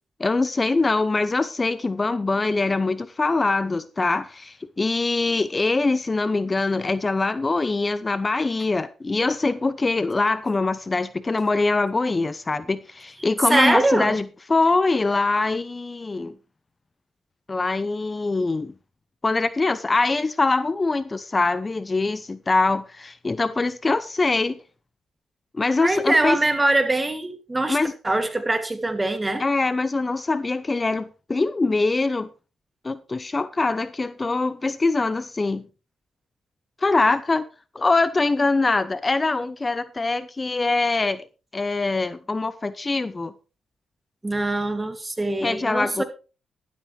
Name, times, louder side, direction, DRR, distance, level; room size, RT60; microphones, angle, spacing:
voice 1, 0.2-16.3 17.5-18.7 19.2-24.6 25.5-26.4 27.7-27.9 29.4-32.3 32.8-35.7 36.8-37.4 37.7-41.3 41.5-43.3 45.4-46.0, left 3 dB, 30° left, 0.7 m, -23 dB
voice 2, 13.5-14.2 25.8-27.8 28.0-29.4 44.2-46.0, right 2 dB, 20° right, 2.5 m, -22 dB
12.5 x 12.0 x 3.3 m
hypercardioid pair, 45°, 0 cm